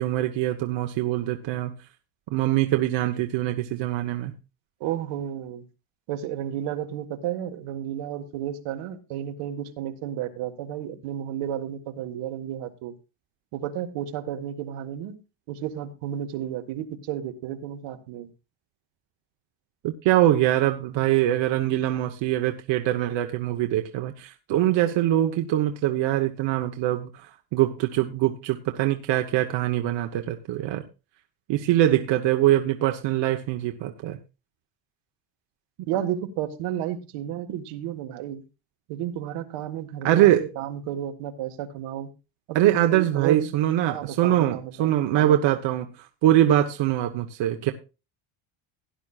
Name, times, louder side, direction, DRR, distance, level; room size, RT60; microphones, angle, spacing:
voice 1, 0.0-1.7 2.3-4.3 19.8-30.8 31.5-34.2 40.0-40.5 42.5-45.9 46.2-47.7, right 13 dB, 60° right, 5 dB, 1.0 m, -23 dB
voice 2, 4.8-5.7 6.1-12.9 13.5-15.2 15.5-18.3 31.7-31.8 35.9-38.4 38.9-42.1 42.5-43.5 43.9-45.5, right 10 dB, 80° right, 6 dB, 1.7 m, -32 dB
17.0 x 10.5 x 2.4 m, 0.30 s
cardioid pair, 150°, 50 cm